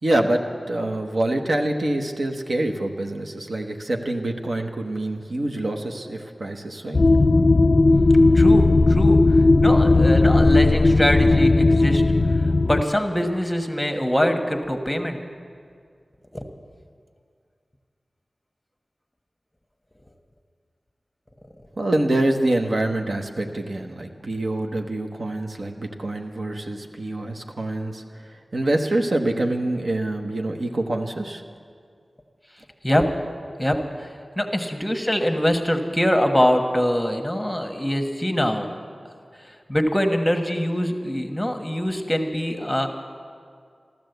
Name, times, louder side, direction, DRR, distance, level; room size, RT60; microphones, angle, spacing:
voice 1, 0.0-7.0 21.8-28.0 28.3-31.4, right 1 dB, 65° right, 3 dB, 1.1 m, -25 dB
sound 1, 6.9-12.8, left 2 dB, 55° left, 0.5 m, -16 dB
voice 2, 8.3-9.2 9.6-12.0 12.6-15.2 16.3-16.4 32.8-33.0 33.6-34.1 34.4-38.7 39.5-42.9, equal, 5° left, 4 dB, 1.3 m, -23 dB
13.5 x 12.5 x 8.0 m, 2.2 s
wide cardioid pair, 85°, 0 cm